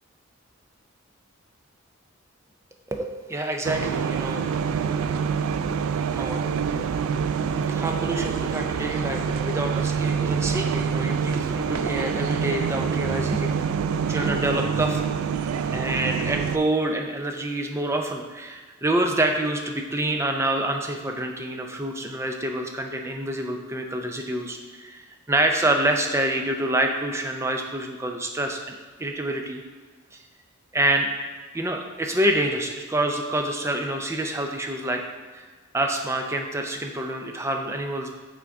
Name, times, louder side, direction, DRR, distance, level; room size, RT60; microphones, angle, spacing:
voice 1, 2.9-4.4 6.1-6.5 7.7-13.5 14.1-15.0 15.7-29.6 30.1-30.2 30.7-31.1 31.5-35.0 35.3-35.5 35.7-38.2, right 1 dB, 15° right, 3 dB, 0.4 m, -27 dB
sound 1, 3.6-16.6, right 6 dB, 85° right, 0.3 m, -26 dB
6.0 x 3.6 x 4.6 m, 1.4 s
head